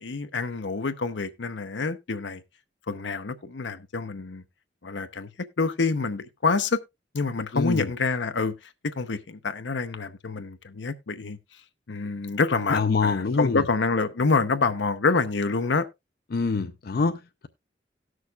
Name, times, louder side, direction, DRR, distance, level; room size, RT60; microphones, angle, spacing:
voice 1, 0.0-2.4 2.9-4.4 4.8-5.3 5.6-6.8 7.1-8.5 9.0-11.4 11.9-15.9, left 4 dB, 85° left, 0.7 m, -27 dB
voice 2, 7.5-7.9 12.7-13.6 16.3-17.5, left 4 dB, 55° left, 0.5 m, -25 dB
18.0 x 6.3 x 2.3 m
head